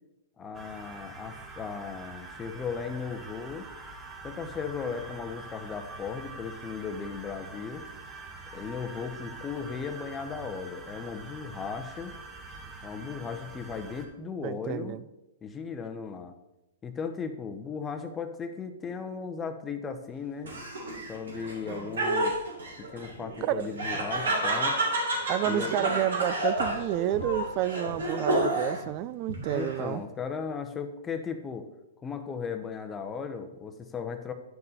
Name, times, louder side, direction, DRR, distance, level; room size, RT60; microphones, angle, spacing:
voice 1, 0.4-3.7 4.2-7.9 8.5-12.1 12.8-14.9 15.4-16.4 16.8-20.5 21.1-22.3 22.9-24.8 25.4-25.7 29.5-31.7 32.0-34.3, left 5 dB, 15° left, 6 dB, 0.9 m, -36 dB
sound 1, 0.5-14.1, right 3 dB, 15° right, 1.2 m, -44 dB
voice 2, 14.4-15.0 23.4-23.7 25.3-30.0, right 13 dB, 40° right, 16 dB, 0.4 m, -30 dB
Laughter, 20.4-28.9 29.3-30.0, right 1 dB, 85° right, 2.9 m, -30 dB
10.5 x 5.4 x 4.0 m, 0.95 s
hypercardioid pair, 130°, 0 cm